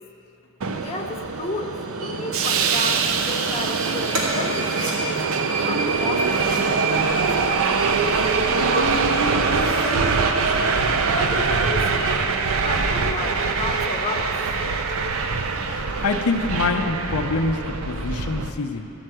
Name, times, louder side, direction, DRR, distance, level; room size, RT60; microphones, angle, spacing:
Subway metro underground, 0.6-18.5, right 4 dB, 65° right, 0.5 m, -23 dB
voice 1, 0.7-1.7 2.0-5.1 5.6-6.6 7.2-7.7 8.6-10.8 11.1-12.1 12.6-14.3, left 2 dB, 30° left, 2 dB, 0.7 m, -32 dB
sound 1, 4.1-5.0 6.1-6.7 7.6-8.4 8.8-8.9 9.3-10.0, right 1 dB, 85° right, 2.2 m, -32 dB
voice 2, 15.7-18.9, left 3 dB, 90° left, 4 dB, 0.6 m, -25 dB
13.0 x 4.6 x 7.6 m, 2.8 s
head